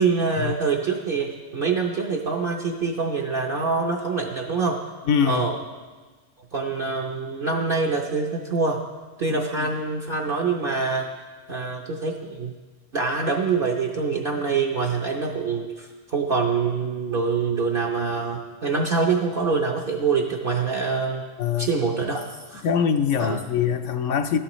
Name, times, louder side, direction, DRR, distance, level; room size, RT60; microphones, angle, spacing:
voice 1, 0.0-4.8 5.2-5.6 6.5-8.8 9.2-11.1 11.5-12.5 12.9-21.2 21.6-22.3 22.5-22.6 23.2-23.4, right 4 dB, 50° right, 0 dB, 0.9 m, -25 dB
voice 2, 5.1-5.4 21.4-21.7 22.6-24.4, left 7 dB, 75° left, 7 dB, 1.0 m, -22 dB
13.0 x 11.5 x 3.0 m, 1.3 s
omnidirectional pair, 1.3 m